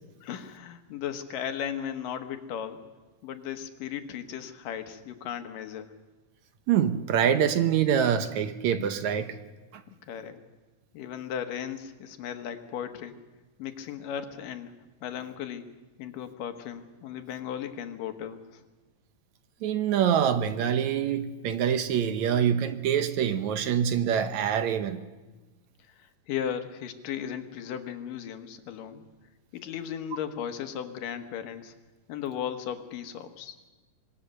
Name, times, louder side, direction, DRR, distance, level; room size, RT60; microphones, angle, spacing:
voice 1, 0.2-2.8 3.2-5.9 9.9-10.4 10.9-13.2 13.6-14.7 15.0-15.7 16.0-18.6 25.9-29.0 29.5-31.7 32.1-33.6, left 9 dB, 90° left, 7 dB, 3.0 m, -36 dB
voice 2, 6.7-9.3 19.6-25.0, right 8 dB, 70° right, 9 dB, 2.1 m, -25 dB
26.0 x 19.5 x 6.7 m, 1.2 s
omnidirectional pair, 3.8 m